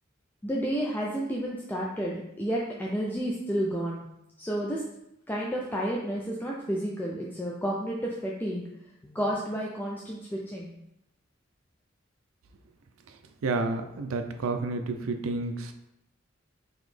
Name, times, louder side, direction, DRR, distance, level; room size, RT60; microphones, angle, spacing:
voice 1, 0.4-4.0 4.4-4.8 5.3-8.6 9.0-10.7, equal, 10° left, -4 dB, 0.4 m, -31 dB
voice 2, 13.4-15.7, right 3 dB, 85° right, 6 dB, 0.5 m, -30 dB
4.0 x 3.0 x 3.2 m, 0.85 s
head